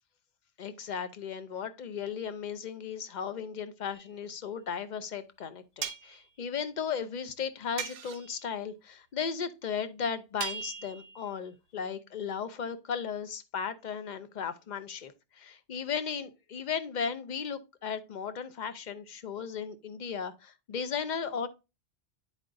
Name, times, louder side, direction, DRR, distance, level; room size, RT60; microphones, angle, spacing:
voice 1, 0.6-21.5, left 7 dB, 45° left, 0.7 m, -36 dB
sound 1, 3.9-4.1 5.8-6.2 7.8-8.4 10.4-11.3, right 7 dB, 80° right, 1.0 m, -38 dB
9.9 x 4.7 x 2.5 m
omnidirectional pair, 1.2 m